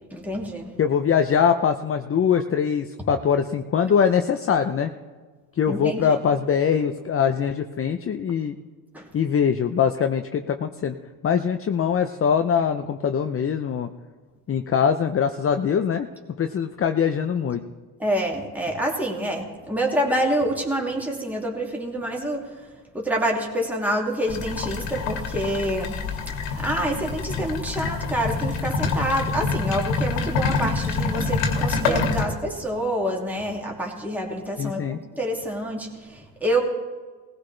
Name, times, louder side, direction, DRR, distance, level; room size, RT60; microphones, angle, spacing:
voice 1, 0.1-0.7 5.7-6.2 8.9-9.1 18.0-22.6 22.9-26.0 26.6-36.6, right 1 dB, 5° right, -1 dB, 2.5 m, -27 dB
voice 2, 0.8-4.9 5.6-8.6 9.1-11.0 11.2-13.9 14.5-16.1 16.4-17.6 34.6-35.0, left 7 dB, 30° left, 7 dB, 0.7 m, -22 dB
sound 1, 24.3-32.2, left 4 dB, 85° left, 2.1 m, -26 dB
19.0 x 15.5 x 3.3 m, 1.4 s
supercardioid pair, 85°, 42 cm